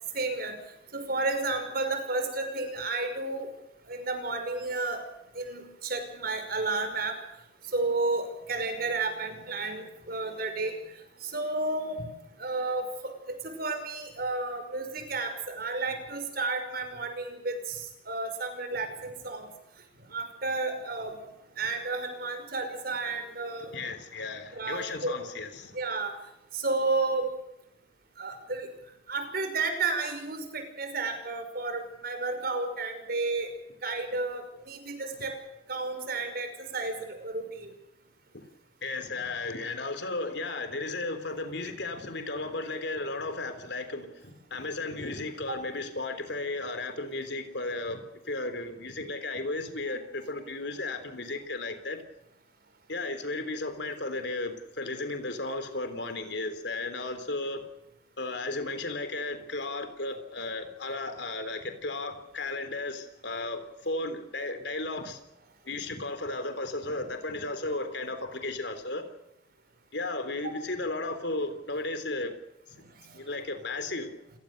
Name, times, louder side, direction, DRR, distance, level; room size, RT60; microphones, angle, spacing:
voice 1, 0.1-0.6 0.9-3.5 3.9-5.0 5.3-7.2 7.7-10.8 11.2-12.1 12.4-19.5 20.1-21.2 21.6-23.7 24.5-25.1 25.7-26.2 26.5-27.3 28.2-28.7 29.1-33.5 33.8-35.3 35.7-37.7 45.5-45.6 70.4-70.5 73.1-73.2, right 3 dB, 55° right, 7 dB, 5.6 m, -32 dB
voice 2, 23.7-25.8 38.8-52.0 52.9-57.6 58.2-65.2 65.7-69.0 69.9-72.4 73.1-74.1, left 2 dB, 65° left, 8 dB, 3.6 m, -34 dB
28.5 x 19.0 x 6.7 m, 0.86 s
head